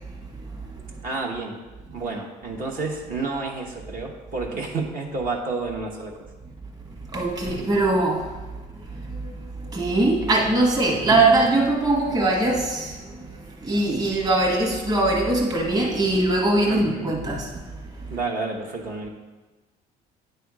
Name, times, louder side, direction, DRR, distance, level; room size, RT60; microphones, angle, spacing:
voice 1, 0.4-0.8 7.1-17.5 17.9-18.1, right 2 dB, 25° right, -2 dB, 1.2 m, -22 dB
voice 2, 1.0-1.6 1.9-6.3 16.7-17.1 18.1-19.1, right 3 dB, 55° right, 0 dB, 1.2 m, -30 dB
9.4 x 3.5 x 4.8 m, 1.2 s
cardioid pair, 110°, 17 cm